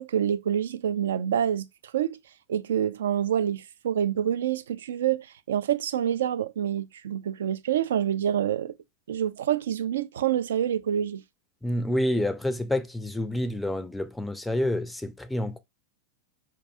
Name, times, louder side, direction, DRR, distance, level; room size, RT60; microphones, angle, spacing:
voice 1, 0.0-1.7 1.9-2.2 2.5-8.7 9.1-11.2, right 10 dB, 60° right, 0.3 m, -27 dB
voice 2, 11.6-15.6, left 1 dB, 5° left, 0.4 m, -28 dB
4.5 x 2.2 x 2.4 m
figure-of-eight pair, 90°, 0 cm